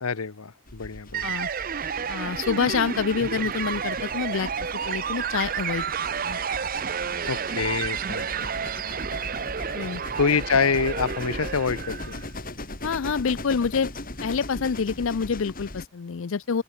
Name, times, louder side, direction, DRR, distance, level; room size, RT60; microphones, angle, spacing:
voice 1, 0.0-1.4 7.3-9.0 10.2-12.2, left 5 dB, 80° left, 0.9 m, -27 dB
sound 1, 0.7-15.9, left 1 dB, 40° left, 4.9 m, -39 dB
sound 2, 1.1-12.3, right 7 dB, 40° right, 0.6 m, -31 dB
voice 2, 2.1-4.5 4.9-5.8 6.2-6.4 9.7-10.0 12.8-13.9 14.2-16.6, left 5 dB, 65° left, 0.5 m, -27 dB
open air
head